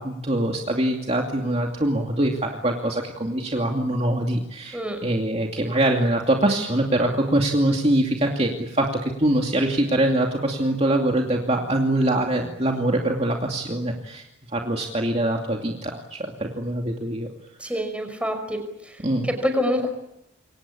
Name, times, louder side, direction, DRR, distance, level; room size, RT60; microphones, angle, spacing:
voice 1, 0.0-14.2 14.5-17.3 19.0-19.3, right 1 dB, 35° right, 1 dB, 2.6 m, -23 dB
voice 2, 17.6-19.9, equal, 5° right, 6 dB, 5.7 m, -27 dB
28.0 x 24.5 x 8.6 m, 0.85 s
head